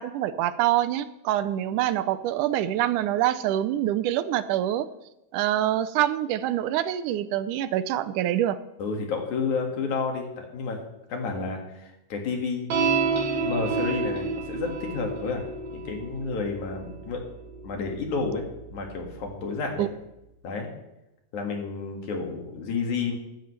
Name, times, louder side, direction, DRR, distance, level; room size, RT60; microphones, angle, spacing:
voice 1, 0.0-4.9 5.3-8.6 19.8-19.9, right 12 dB, 85° right, 13 dB, 2.1 m, -25 dB
voice 2, 8.8-10.8 11.1-12.7 13.3-15.4 15.7-17.2 17.6-19.9 20.4-20.7 21.3-23.2, left 4 dB, 70° left, 2 dB, 3.3 m, -30 dB
sound 1, 12.7-19.4, right 4 dB, 65° right, 2.7 m, -30 dB
15.5 x 13.0 x 3.3 m, 0.90 s
omnidirectional pair, 3.6 m